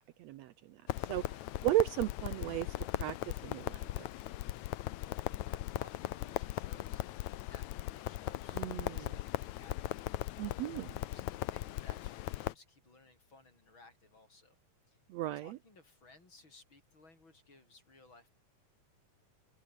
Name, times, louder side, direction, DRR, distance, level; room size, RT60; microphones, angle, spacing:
voice 1, 0.2-4.1 8.5-9.1 10.4-11.0 15.1-15.6, right 15 dB, 75° right, 1.7 m, -36 dB
Crackle, 0.9-12.5, left 16 dB, 75° left, 2.1 m, -39 dB
voice 2, 5.0-7.0 7.3-10.5 11.0-14.6 14.9-15.0 15.4-18.3, left 3 dB, 40° left, 6.2 m, -60 dB
omnidirectional pair, 3.5 m